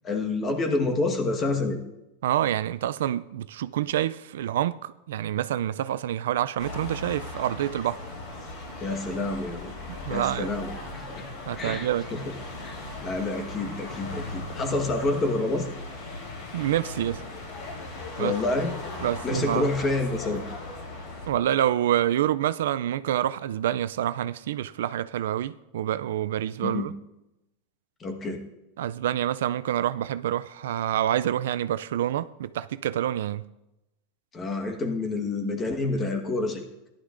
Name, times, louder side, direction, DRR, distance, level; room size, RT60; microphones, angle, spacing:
voice 1, 0.0-1.8 8.8-9.7 10.1-11.3 11.6-12.3 12.6-15.7 18.2-18.7 19.2-20.4 26.6-26.9 28.0-28.4 34.3-36.6, left 2 dB, 25° left, 1.3 m, -28 dB
voice 2, 2.2-8.0 9.9-10.5 11.5-12.1 16.5-17.2 18.2-18.3 19.0-19.7 21.3-26.9 28.8-33.4, right 11 dB, 80° right, 0.3 m, -27 dB
sound 1, 6.6-21.3, left 2 dB, 55° left, 3.6 m, -38 dB
14.5 x 11.5 x 2.5 m
supercardioid pair, 135°, 0 cm